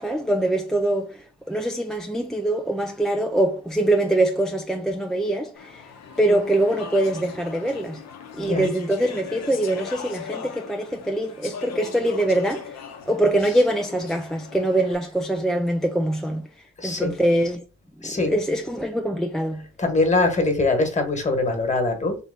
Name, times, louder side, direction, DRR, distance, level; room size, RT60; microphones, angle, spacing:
voice 1, 0.0-5.9 6.2-8.0 8.3-12.8 13.1-16.5 16.8-17.6 18.0-19.7, right 1 dB, ahead, 0.3 m, -23 dB
Speech / Chatter, 5.6-14.9, left 6 dB, 60° left, 0.8 m, -39 dB
voice 2, 8.4-8.7 13.4-13.5 16.8-17.1 18.0-18.4 19.8-22.2, left 2 dB, 25° left, 1.4 m, -23 dB
3.4 x 2.8 x 3.9 m
cardioid pair, 90°, 30 cm